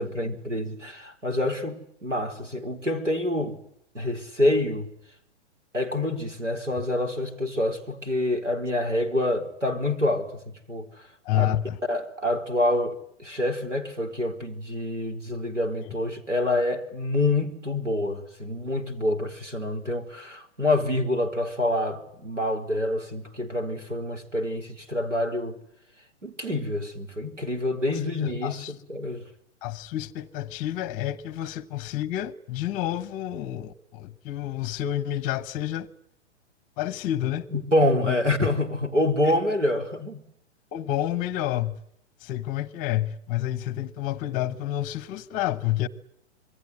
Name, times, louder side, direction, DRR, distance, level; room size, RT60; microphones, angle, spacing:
voice 1, 0.0-3.6 3.9-4.9 5.7-10.9 11.3-11.6 11.9-25.6 26.2-29.2 37.5-40.2, left 1 dB, 90° right, 4.5 m, -27 dB
voice 2, 11.2-11.8 15.8-15.9 27.9-28.7 29.6-35.9 36.8-37.5 38.0-38.4 39.2-39.4 40.7-41.8 42.2-45.9, left 13 dB, 20° left, 1.0 m, -29 dB
27.0 x 22.0 x 9.6 m
figure-of-eight pair, 120°, 36 cm